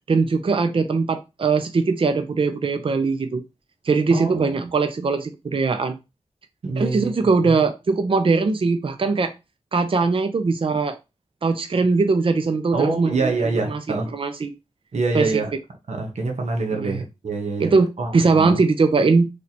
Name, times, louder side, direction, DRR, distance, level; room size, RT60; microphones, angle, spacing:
voice 1, 0.1-3.4 3.8-6.0 6.8-9.3 9.7-11.0 11.4-13.3 13.6-13.8 14.1-14.5 15.1-15.4 16.7-17.0 17.6-19.3, right 4 dB, 50° right, 0.5 m, -21 dB
voice 2, 4.1-4.7 6.6-7.1 7.4-7.6 12.7-14.1 14.9-15.5 15.9-17.7 18.0-18.6, right 3 dB, 85° right, 1.0 m, -25 dB
3.2 x 2.8 x 4.1 m
wide cardioid pair, 90°, 11 cm